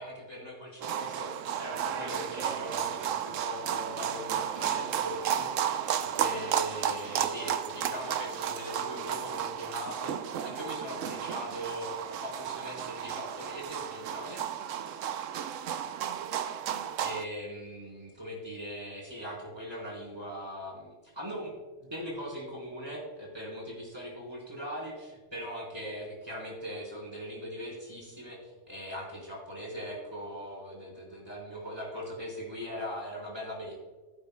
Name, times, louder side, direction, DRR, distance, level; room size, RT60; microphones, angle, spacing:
voice 1, 0.0-14.6 17.0-21.5 21.8-33.7, equal, 20° right, -4 dB, 4.2 m, -40 dB
sound 1, 0.8-17.2, right 9 dB, 90° right, 1.0 m, -33 dB
21.0 x 8.8 x 2.2 m, 1.3 s
omnidirectional pair, 1.3 m